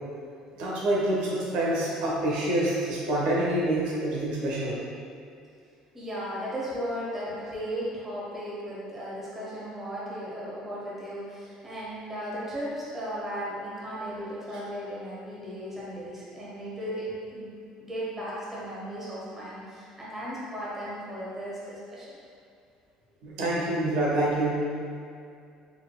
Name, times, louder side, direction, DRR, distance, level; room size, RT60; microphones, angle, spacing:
voice 1, 0.6-4.8 23.2-24.6, right 1 dB, 75° right, -5 dB, 1.1 m, -26 dB
voice 2, 5.9-17.5 17.8-22.2, equal, 15° right, -7 dB, 0.9 m, -36 dB
4.7 x 4.2 x 2.2 m, 2.4 s
cardioid pair, 165°, 2 cm